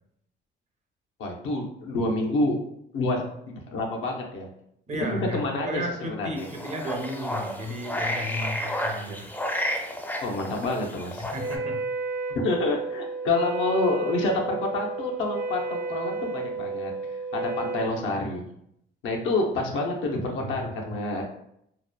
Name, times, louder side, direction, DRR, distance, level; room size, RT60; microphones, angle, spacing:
voice 1, 1.2-2.6 2.9-4.5 5.0-6.5 10.2-11.3 12.3-16.9 17.3-18.4 19.0-21.2, left 2 dB, 85° left, 0 dB, 0.6 m, -28 dB
voice 2, 4.9-5.4 5.7-9.3 11.3-11.8 20.4-20.5, equal, 35° right, 3 dB, 0.5 m, -33 dB
sound 1, 6.4-11.6, equal, 10° left, 0.4 m, -32 dB
Wind instrument woodwind instrument, 11.4-18.0, right 3 dB, 75° right, 0.8 m, -32 dB
2.7 x 2.1 x 2.2 m, 0.74 s
cardioid pair, 90°, 20 cm